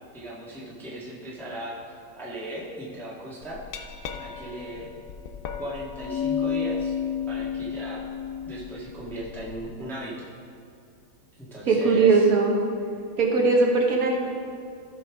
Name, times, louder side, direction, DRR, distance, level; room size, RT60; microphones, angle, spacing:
voice 1, 0.1-3.6 4.2-4.9 5.6-6.9 7.3-8.1 8.5-10.1 11.4-12.2, right 1 dB, ahead, -7 dB, 1.2 m, -37 dB
Glass, 3.4-9.6, left 7 dB, 80° left, 0.7 m, -32 dB
voice 2, 11.7-12.5 13.2-14.2, right 4 dB, 50° right, 0 dB, 1.4 m, -19 dB
14.5 x 5.5 x 3.5 m, 2.4 s
omnidirectional pair, 2.2 m